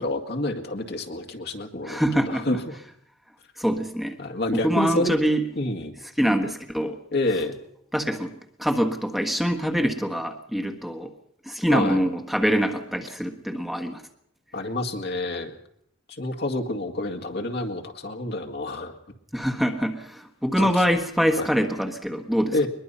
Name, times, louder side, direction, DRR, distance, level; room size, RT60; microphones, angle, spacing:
voice 1, 0.0-2.6 4.2-5.1 5.6-5.9 7.1-7.6 11.7-12.0 14.5-15.6 16.2-18.9 20.6-20.7 21.4-21.5 22.5-22.7, left 2 dB, 60° left, 4 dB, 2.1 m, -28 dB
voice 2, 1.8-2.5 3.6-4.2 4.5-5.4 6.2-7.0 7.9-8.3 8.6-11.1 11.4-14.0 19.3-22.5, equal, ahead, 4 dB, 1.4 m, -24 dB
21.5 x 21.5 x 5.6 m, 0.71 s
head